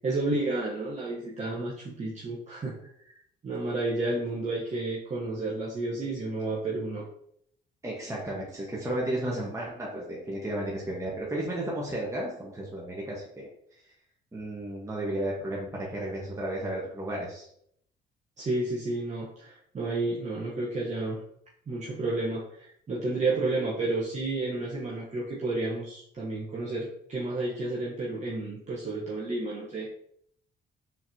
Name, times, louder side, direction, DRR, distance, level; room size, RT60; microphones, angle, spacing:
voice 1, 0.0-2.8 3.1-3.2 3.4-7.0 18.4-21.2 21.7-29.9, right 2 dB, 35° right, -5 dB, 1.0 m, -31 dB
voice 2, 7.8-13.5 14.3-17.5, right 1 dB, 15° right, -5 dB, 1.2 m, -33 dB
4.6 x 3.7 x 2.8 m, 0.69 s
cardioid pair, 90°, 20 cm